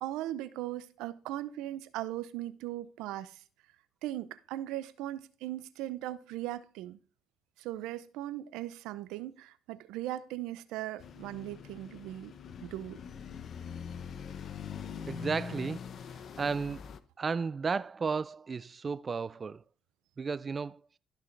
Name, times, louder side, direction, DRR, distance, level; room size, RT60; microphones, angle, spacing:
voice 1, 0.0-3.4 4.0-7.0 7.6-12.3 12.6-13.0, right 14 dB, 85° right, 0.6 m, -38 dB
sound 1, 11.0-17.0, left 7 dB, 60° left, 0.9 m, -43 dB
voice 2, 15.1-19.6 20.2-20.8, right 5 dB, 40° right, 0.4 m, -34 dB
13.5 x 6.1 x 3.3 m
supercardioid pair, 70°, 0 cm